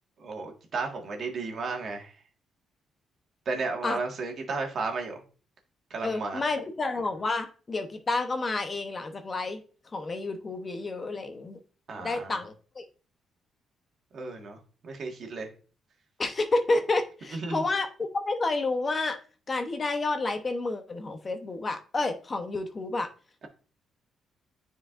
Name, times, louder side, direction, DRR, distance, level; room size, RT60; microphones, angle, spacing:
voice 1, 0.2-2.1 3.4-5.2 5.9-6.4 11.9-12.4 14.1-15.5 17.3-17.6, right 4 dB, 55° right, 1.6 m, -34 dB
voice 2, 6.0-9.6 9.9-11.6 12.0-12.8 16.2-19.2 19.5-23.1, left 3 dB, 35° left, 0.8 m, -30 dB
9.5 x 4.6 x 2.5 m
cardioid pair, 90°, 0 cm